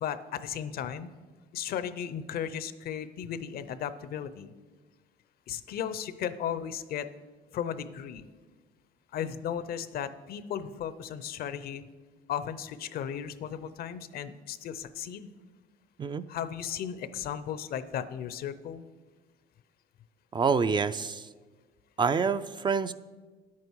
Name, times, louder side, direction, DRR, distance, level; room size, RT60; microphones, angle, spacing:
voice 1, 0.0-1.1 1.5-4.5 5.5-7.1 7.5-8.3 9.1-11.8 12.3-15.3 16.3-18.8, left 9 dB, 65° left, 13 dB, 0.6 m, -35 dB
voice 2, 20.3-21.3 22.0-22.9, right 5 dB, 25° right, 12 dB, 0.3 m, -27 dB
10.5 x 8.5 x 4.6 m, 1.4 s
cardioid pair, 110°, 17 cm